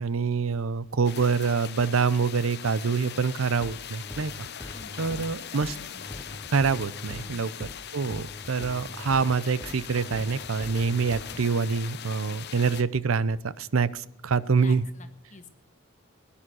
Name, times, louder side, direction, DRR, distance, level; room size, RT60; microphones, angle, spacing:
voice 1, 0.0-4.3 4.6-5.7 6.5-7.7 7.9-14.8, right 5 dB, 75° right, 18 dB, 0.6 m, -26 dB
sound 1, 1.0-12.8, left 9 dB, 55° left, 0.8 m, -41 dB
sound 2, 3.6-11.4, left 1 dB, 10° left, 0.5 m, -42 dB
voice 2, 4.7-5.2 5.5-6.5 7.2-7.7 14.6-15.5, left 3 dB, 35° left, 8 dB, 1.5 m, -49 dB
17.0 x 10.0 x 6.3 m, 0.82 s
head